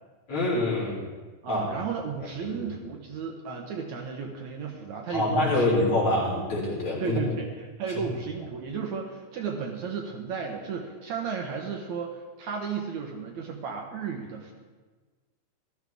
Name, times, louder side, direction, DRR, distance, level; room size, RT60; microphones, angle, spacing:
voice 1, 0.3-1.0 1.5-1.7 2.4-2.6 5.1-7.2, left 2 dB, 45° left, -5 dB, 4.5 m, -25 dB
voice 2, 1.4-5.9 7.0-14.5, right 6 dB, 65° right, 1 dB, 2.3 m, -34 dB
15.5 x 13.5 x 3.6 m, 1.4 s
omnidirectional pair, 3.8 m